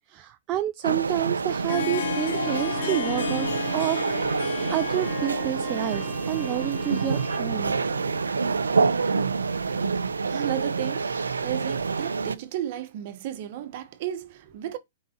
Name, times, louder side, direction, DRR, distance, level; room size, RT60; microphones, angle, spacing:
voice 1, 0.1-3.5 3.7-4.4 4.7-7.8, right 13 dB, 30° right, 0.4 m, -29 dB
sound 1, 0.8-12.4, right 4 dB, 85° right, 0.5 m, -27 dB
Harp, 1.4-9.1, left 8 dB, 65° left, 0.8 m, -35 dB
Bowed string instrument, 2.4-8.7, equal, ahead, 1.2 m, -43 dB
voice 2, 9.6-14.8, right 12 dB, 50° right, 1.0 m, -34 dB
4.7 x 3.7 x 2.9 m
hypercardioid pair, 120°, 0 cm